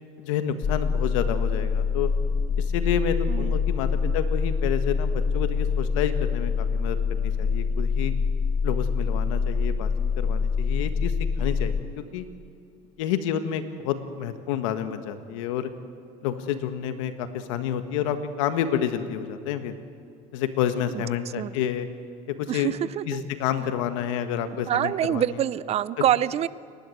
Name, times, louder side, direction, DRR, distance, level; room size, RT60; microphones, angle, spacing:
voice 1, 0.2-2.1 2.6-8.1 8.6-9.9 10.2-12.2 13.0-15.7 16.2-19.8 20.3-21.9 22.3-22.7 23.1-25.4 26.0-26.1, left 9 dB, 85° left, 9 dB, 1.7 m, -29 dB
sound 1, 0.6-11.8, left 5 dB, 35° left, 1.0 m, -25 dB
voice 2, 22.5-23.2 24.7-26.5, right 11 dB, 40° right, 18 dB, 0.6 m, -25 dB
29.0 x 11.5 x 8.0 m, 2.4 s
supercardioid pair, 110°, 16 cm